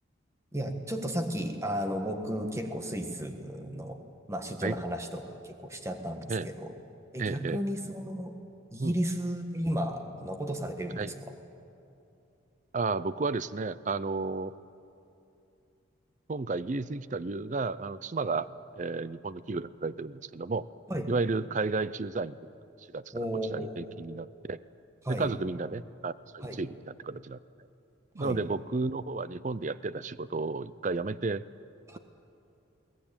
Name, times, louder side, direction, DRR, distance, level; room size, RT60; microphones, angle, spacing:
voice 1, 0.5-4.0 4.3-6.7 7.1-8.3 8.7-11.1 20.9-21.1 23.1-23.9 25.0-25.3 26.4-26.6 28.2-28.4 31.9-32.0, equal, 15° right, 5 dB, 1.5 m, -33 dB
voice 2, 7.2-7.6 8.8-9.0 11.0-11.1 12.7-14.5 16.3-18.5 18.8-20.6 21.1-22.4 22.9-23.0 23.5-24.6 25.1-27.4 28.1-31.4, right 3 dB, 35° right, 17 dB, 0.5 m, -32 dB
22.0 x 18.0 x 8.8 m, 2.7 s
head